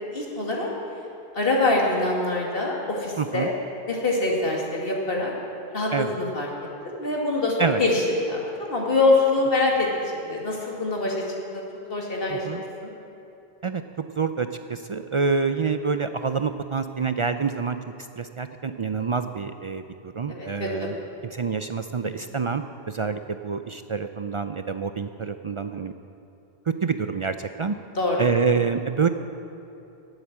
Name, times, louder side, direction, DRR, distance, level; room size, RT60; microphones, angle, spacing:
voice 1, 0.1-0.7 1.3-3.5 3.9-5.3 5.7-6.5 6.8-9.9 10.2-11.2 11.5-11.6 11.9-12.9 20.3-20.9 27.9-28.2, left 2 dB, 60° left, -2 dB, 2.5 m, -24 dB
voice 2, 3.2-3.5 5.9-6.1 7.6-7.8 12.3-12.6 13.6-13.8 14.2-17.8 18.2-21.0 21.2-25.9 26.8-27.7 28.2-29.1, right 5 dB, 55° right, 9 dB, 0.3 m, -27 dB
18.0 x 8.1 x 7.4 m, 2.8 s
omnidirectional pair, 1.1 m